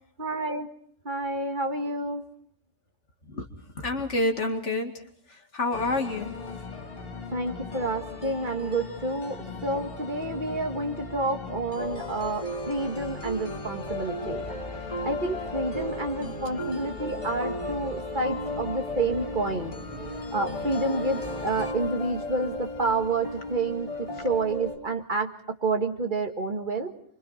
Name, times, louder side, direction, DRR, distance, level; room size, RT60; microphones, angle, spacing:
voice 1, 0.2-0.7 1.1-2.2 7.3-14.5 15.0-19.8 20.3-25.3 25.6-26.9, right 2 dB, 40° right, 3 dB, 2.0 m, -29 dB
voice 2, 3.7-6.3 16.2-16.8 24.1-24.2, left 2 dB, 70° left, 4 dB, 2.4 m, -29 dB
sound 1, 5.7-21.7, left 3 dB, 50° left, 2.0 m, -39 dB
sound 2, 11.7-24.8, left 1 dB, 25° left, 4.2 m, -36 dB
28.5 x 25.0 x 4.4 m, 0.65 s
omnidirectional pair, 1.3 m